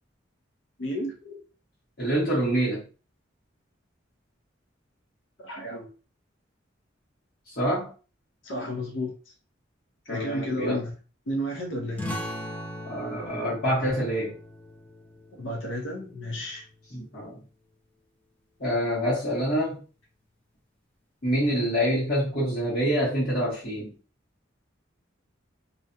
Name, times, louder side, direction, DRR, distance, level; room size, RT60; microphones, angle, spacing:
voice 1, 0.8-1.4 5.4-5.9 8.4-9.1 10.1-10.9 11.3-12.2 15.3-16.6, equal, 75° left, 0.6 m, -32 dB
voice 2, 2.0-2.8 7.5-7.9 10.1-10.8 12.8-14.4 16.9-17.4 18.6-19.8 21.2-23.9, equal, 50° left, 1.1 m, -26 dB
sound 1, 12.0-17.2, left 1 dB, 10° left, 0.4 m, -39 dB
2.5 x 2.2 x 2.6 m
head